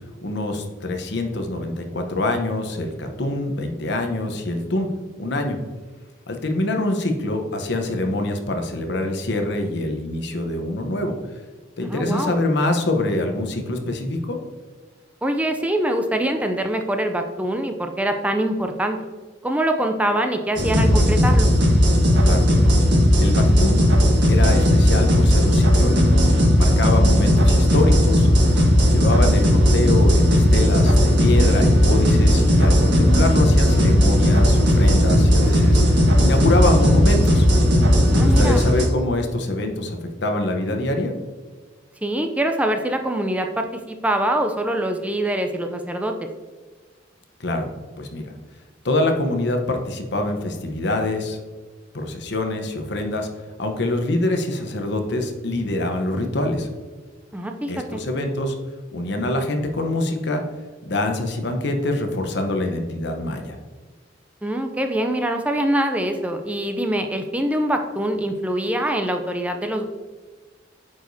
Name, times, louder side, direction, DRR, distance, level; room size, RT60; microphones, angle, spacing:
voice 1, 0.2-4.9 5.2-5.6 6.3-11.1 11.8-14.4 22.2-22.6 23.2-23.8 24.3-26.1 26.6-28.3 28.9-37.5 38.1-41.1 47.4-47.7 48.0-48.3 48.8-51.4 51.9-53.3 53.6-56.7 57.7-58.5 58.9-60.4 60.9-63.6, left 2 dB, 60° left, 5 dB, 0.9 m, -25 dB
voice 2, 11.8-12.4 15.2-19.0 19.4-21.5 38.1-38.6 42.0-46.3 57.3-58.0 64.4-69.9, right 1 dB, 5° right, 5 dB, 0.4 m, -24 dB
sound 1, 20.6-38.9, equal, 65° right, 1.4 m, -16 dB
8.5 x 4.8 x 2.7 m, 1.4 s
head